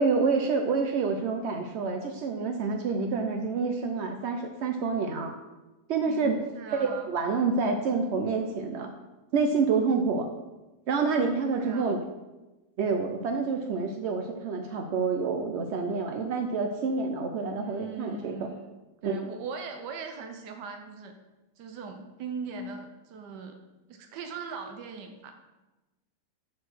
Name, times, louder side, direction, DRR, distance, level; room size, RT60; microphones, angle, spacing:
voice 1, 0.0-5.3 5.9-6.4 6.7-8.9 9.3-10.3 10.9-12.0 12.8-18.5 19.0-19.3, right 4 dB, 70° right, 4 dB, 0.6 m, -28 dB
voice 2, 6.1-7.1 11.5-12.0 17.6-18.7 19.0-21.2 21.6-23.6 23.9-25.3, right 5 dB, 90° right, 5 dB, 1.4 m, -40 dB
7.1 x 4.5 x 6.1 m, 1.1 s
omnidirectional pair, 1.8 m